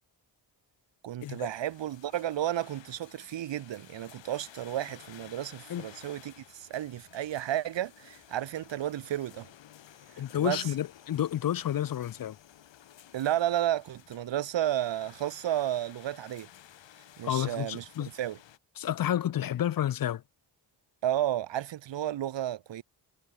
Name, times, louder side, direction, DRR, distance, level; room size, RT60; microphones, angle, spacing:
voice 1, 1.0-9.5 10.1-10.7 13.1-16.5 17.2-18.4 21.0-22.8, right 12 dB, 80° right, 1.3 m, -32 dB
sound 1, 1.2-18.6, left 11 dB, 85° left, 2.3 m, -54 dB
voice 2, 10.2-12.4 17.2-18.1 18.8-20.2, left 11 dB, 50° left, 0.6 m, -30 dB
cardioid pair, 80°, 43 cm